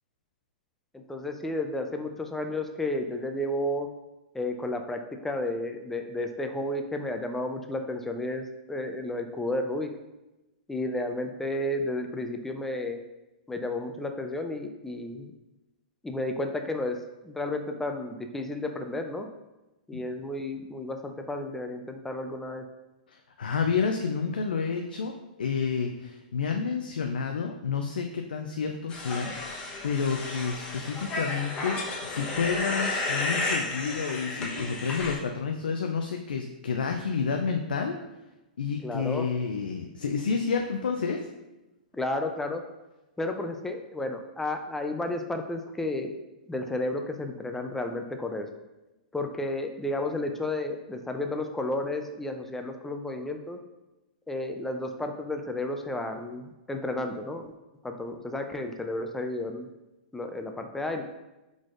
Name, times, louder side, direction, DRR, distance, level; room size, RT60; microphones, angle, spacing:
voice 1, 0.9-3.9 4.3-9.9 10.7-13.0 13.5-15.3 16.0-19.3 19.9-22.6 38.8-39.3 41.9-42.6 43.2-46.2 46.5-48.5 49.1-53.6 54.3-57.5 57.8-59.7 60.1-61.0, left 1 dB, 5° left, 5 dB, 0.4 m, -32 dB
voice 2, 23.1-25.1 25.4-37.9 38.6-41.3, left 5 dB, 85° left, 3 dB, 0.4 m, -30 dB
sound 1, 28.9-35.2, left 2 dB, 20° left, 1.0 m, -32 dB
4.7 x 4.0 x 2.5 m, 1.0 s
hypercardioid pair, 125°, 5 cm